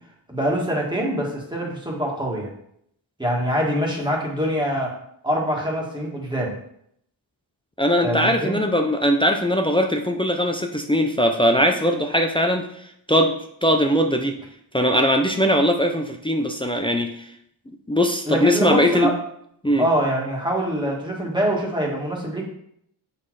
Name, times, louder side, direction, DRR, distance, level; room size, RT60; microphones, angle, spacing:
voice 1, 0.3-2.5 3.2-4.9 5.2-6.5 8.0-8.6 18.2-19.2 19.8-22.4, equal, 10° right, -2 dB, 1.8 m, -24 dB
voice 2, 7.8-12.8 13.1-13.4 13.6-14.4 14.7-17.3 17.9-19.1 19.6-19.8, equal, 10° left, 4 dB, 0.5 m, -20 dB
7.8 x 4.3 x 4.7 m, 0.71 s
wide cardioid pair, 135°, 46 cm